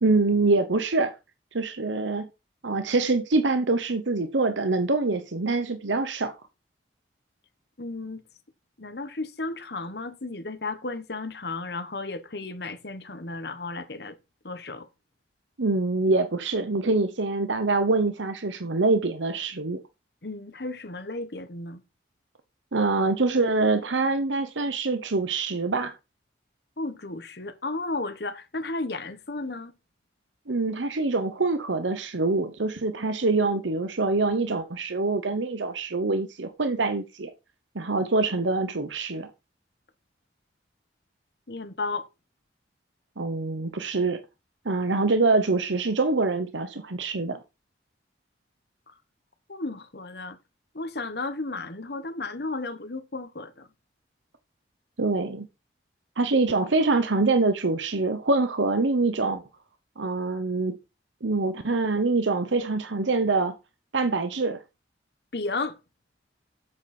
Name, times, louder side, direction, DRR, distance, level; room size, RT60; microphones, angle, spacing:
voice 1, 0.0-1.1 1.5-2.3 2.6-6.3 15.6-19.8 22.7-25.9 30.5-37.3 37.7-39.3 43.2-44.2 44.6-47.4 55.0-55.5 56.2-59.4 60.0-60.7 61.2-63.5 63.9-64.6, right 3 dB, 90° right, 1.0 m, -25 dB
voice 2, 7.8-8.2 8.8-14.2 14.4-14.9 20.2-21.8 26.8-29.7 41.5-42.1 49.5-50.4 50.7-53.7 65.3-65.8, left 3 dB, 65° left, 1.3 m, -33 dB
8.1 x 7.7 x 4.4 m
head